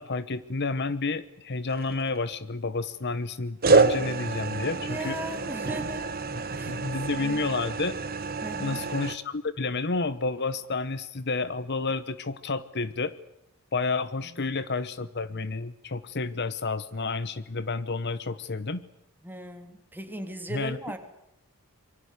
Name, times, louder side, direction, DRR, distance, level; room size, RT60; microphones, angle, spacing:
voice 1, 0.0-5.2 6.7-8.0 8.6-13.1 13.7-18.8 20.5-20.8, left 3 dB, 50° left, 15 dB, 1.0 m, -30 dB
sound 1, 1.7-2.3 3.6-9.2, right 4 dB, 45° right, 1.6 m, -27 dB
voice 2, 4.7-6.1 6.5-6.8 7.1-7.5 8.4-8.8 14.2-14.6 19.2-21.0, right 1 dB, 10° right, 6 dB, 3.2 m, -38 dB
26.5 x 24.0 x 8.3 m, 0.81 s
head